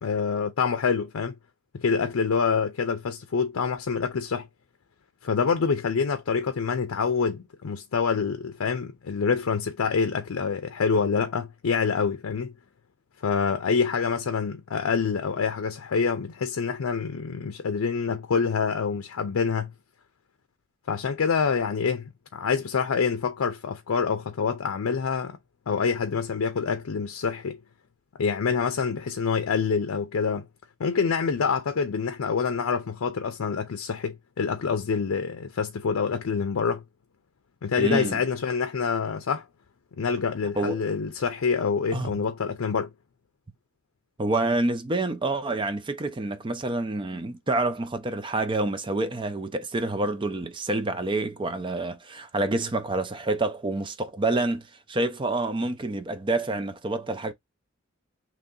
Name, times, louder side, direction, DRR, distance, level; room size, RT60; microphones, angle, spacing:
voice 1, 0.0-1.4 1.7-4.5 5.2-12.5 13.2-19.7 20.9-25.4 25.7-27.6 28.2-30.5 30.8-36.8 37.6-39.4 39.9-42.9, left 5 dB, 90° left, 0.5 m, -26 dB
voice 2, 37.8-38.2 40.6-40.8 41.9-42.1 44.2-57.3, right 2 dB, 25° right, 0.5 m, -28 dB
3.0 x 2.7 x 3.7 m
head